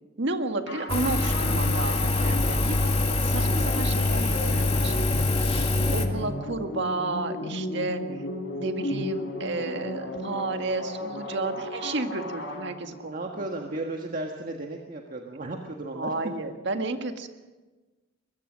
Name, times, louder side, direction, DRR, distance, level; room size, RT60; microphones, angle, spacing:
voice 1, 0.2-2.7 3.2-5.2 5.9-8.0 8.5-13.5 15.9-17.3, right 2 dB, 65° right, 6 dB, 1.8 m, -32 dB
sound 1, 0.7-13.2, left 1 dB, 65° left, 4.2 m, -35 dB
Engine, 0.9-6.1, left 2 dB, 30° left, 1.9 m, -24 dB
voice 2, 13.1-16.1, right 2 dB, 45° right, 2 dB, 1.6 m, -34 dB
23.0 x 21.5 x 6.3 m, 1.2 s
head